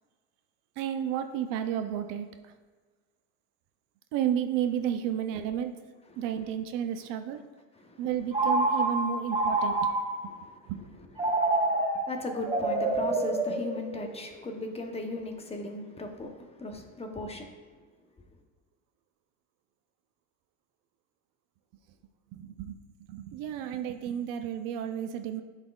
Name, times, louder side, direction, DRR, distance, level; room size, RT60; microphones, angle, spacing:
voice 1, 0.8-2.5 4.1-5.8 6.2-7.4 8.0-9.9 10.2-10.3 10.7-10.8 22.3-22.8 23.1-25.4, right 9 dB, 60° right, 8 dB, 0.6 m, -32 dB
Telephone, 8.3-10.3 11.2-14.2, right 2 dB, 15° right, 1.5 m, -28 dB
voice 2, 12.1-17.5, left 2 dB, 15° left, 3 dB, 0.8 m, -37 dB
10.5 x 4.1 x 2.3 m, 1.4 s
supercardioid pair, 100°, 39 cm